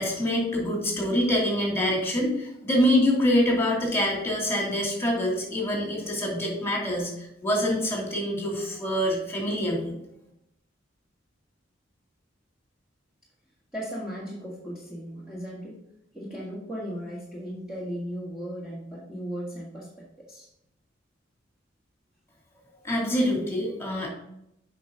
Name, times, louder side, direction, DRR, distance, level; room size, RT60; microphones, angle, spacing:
voice 1, 0.0-9.9 22.8-24.1, left 1 dB, 15° left, -2 dB, 2.5 m, -25 dB
voice 2, 13.7-15.7 16.1-20.5, equal, 5° right, -8 dB, 1.7 m, -36 dB
8.1 x 5.5 x 3.8 m, 0.81 s
head